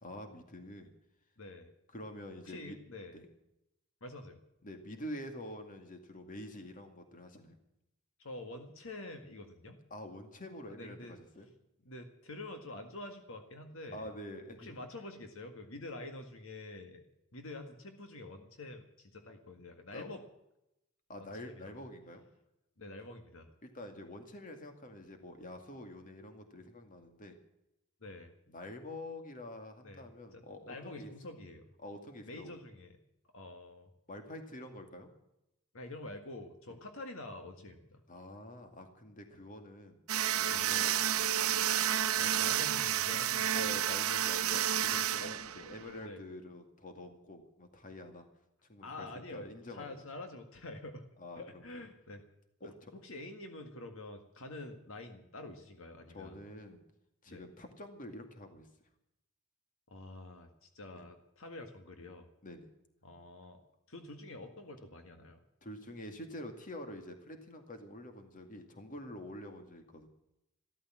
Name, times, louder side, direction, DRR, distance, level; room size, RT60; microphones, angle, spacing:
voice 1, 0.0-0.9 1.9-2.8 3.1-3.3 4.6-7.6 9.9-11.5 13.9-14.8 19.9-20.1 21.1-22.2 23.6-27.3 28.5-31.1 31.8-32.5 34.1-35.1 36.7-36.8 38.1-40.0 40.4-41.2 43.5-48.3 48.7-50.0 51.2-51.9 56.1-56.8 57.2-58.7 60.9-61.0 62.4-62.7 65.6-70.1, left 1 dB, 40° left, 5 dB, 2.2 m, -47 dB
voice 2, 1.4-1.7 2.4-3.1 4.0-4.4 8.2-9.8 10.7-11.2 11.9-14.1 14.6-17.0 17.3-20.2 21.2-21.8 22.8-23.5 28.0-28.3 29.8-30.0 30.3-31.7 32.2-33.0 33.3-33.9 35.7-38.0 40.5-40.7 42.2-43.8 45.2-45.5 46.0-46.2 48.8-51.0 51.4-52.2 52.6-56.4 57.3-57.4 59.9-62.3 63.0-63.6 63.9-65.4, left 2 dB, 65° left, 5 dB, 1.9 m, -47 dB
sound 1, 40.1-46.1, right 10 dB, 75° right, 0.9 m, -31 dB
14.5 x 13.5 x 7.5 m, 0.86 s
head